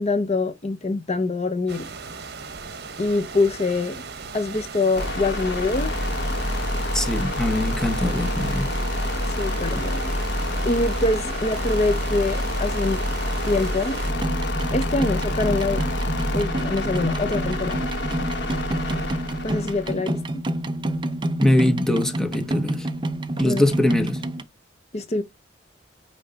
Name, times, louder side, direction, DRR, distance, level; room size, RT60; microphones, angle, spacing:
voice 1, 0.0-1.9 3.0-4.0 4.3-5.9 9.2-10.2 10.7-13.0 13.5-14.0 14.7-15.8 16.3-17.8 19.4-20.2 23.4-23.6 24.9-25.2, left 3 dB, 35° left, 0.6 m, -24 dB
sound 1, 1.7-14.1, right 5 dB, 60° right, 1.1 m, -38 dB
sound 2, 5.0-19.9, left 1 dB, 65° left, 1.4 m, -27 dB
voice 2, 6.9-8.8 21.4-22.9 23.4-24.2, left 1 dB, 5° left, 0.9 m, -22 dB
sound 3, 14.1-24.4, right 1 dB, 25° right, 0.6 m, -28 dB
9.4 x 3.2 x 3.9 m
head